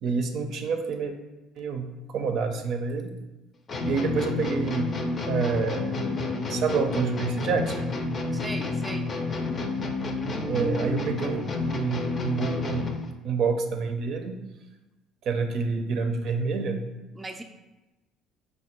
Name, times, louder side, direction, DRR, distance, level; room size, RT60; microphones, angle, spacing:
voice 1, 0.0-1.1 1.5-3.1 3.8-6.0 6.5-7.9 10.4-14.4 15.2-16.8, right 5 dB, 65° right, 5 dB, 0.5 m, -28 dB
sound 1, 3.7-13.1, left 3 dB, 40° left, 0.5 m, -30 dB
voice 2, 8.3-9.1 17.2-17.4, right 2 dB, 10° right, 4 dB, 0.4 m, -37 dB
4.2 x 2.2 x 4.3 m, 1.0 s
supercardioid pair, 75°, 0 cm